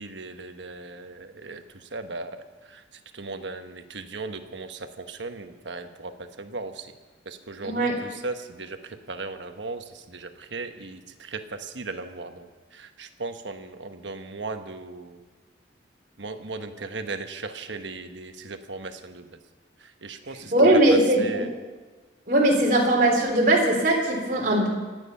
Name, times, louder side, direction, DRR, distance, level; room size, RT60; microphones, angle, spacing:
voice 1, 0.0-1.6 1.9-2.4 3.2-6.8 7.3-8.8 9.1-12.5 12.8-15.2 16.2-19.3 20.0-20.5 20.9-21.5, right 3 dB, 85° right, 7 dB, 1.2 m, -37 dB
voice 2, 7.6-8.0 20.5-21.5 22.3-24.7, right 1 dB, 50° right, 0 dB, 3.7 m, -20 dB
26.0 x 9.2 x 5.6 m, 1.3 s
head